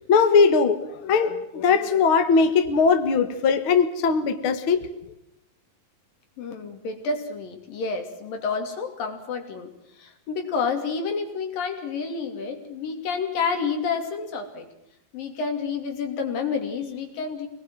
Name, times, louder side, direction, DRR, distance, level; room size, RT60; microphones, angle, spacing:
voice 1, 0.1-4.8, left 5 dB, 50° left, 1.8 m, -20 dB
voice 2, 6.4-14.7 15.1-17.5, left 5 dB, 70° left, 4.5 m, -29 dB
25.0 x 20.0 x 7.7 m
omnidirectional pair, 4.2 m